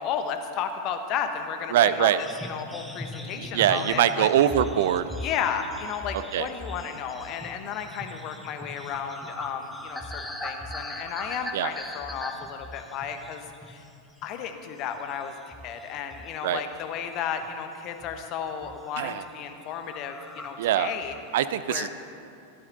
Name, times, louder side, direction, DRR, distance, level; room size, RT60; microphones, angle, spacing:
voice 1, 0.0-4.3 5.2-13.8 14.2-21.1 21.7-21.9, left 7 dB, 40° left, 7 dB, 1.1 m, -33 dB
voice 2, 1.7-2.2 3.4-5.1 6.3-6.5 11.5-11.7 16.4-16.6 19.0-19.2 20.6-20.9 21.3-21.9, right 11 dB, 55° right, 13 dB, 0.4 m, -23 dB
sound 1, 2.2-13.9 14.2-14.5 14.9-16.4 16.7-17.5 18.0-18.3 18.5-18.9 19.2-19.3 19.6-19.7 19.9-21.3, left 1 dB, 5° left, 1.1 m, -40 dB
14.5 x 12.0 x 3.9 m, 2.5 s
figure-of-eight pair, 90°, 0 cm